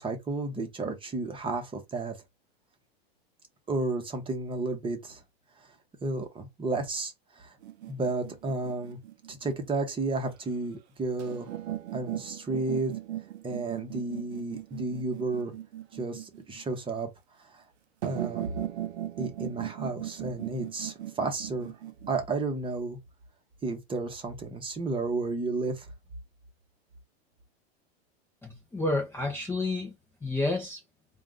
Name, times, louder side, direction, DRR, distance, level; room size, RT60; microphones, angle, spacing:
voice 1, 0.0-2.2 3.7-5.2 6.0-7.6 7.9-9.0 9.3-11.5 11.9-12.9 13.4-15.5 15.9-17.1 17.4-17.6 18.0-18.5 19.2-21.7 22.1-23.0 23.6-25.9, right 3 dB, 15° right, 1.0 m, -32 dB
sound 1, 7.6-9.7 11.2-16.6 18.0-22.2, right 12 dB, 85° right, 0.7 m, -38 dB
voice 2, 28.4-29.9 30.2-30.8, left 2 dB, 5° left, 0.7 m, -30 dB
3.6 x 2.5 x 3.7 m
supercardioid pair, 130°, 32 cm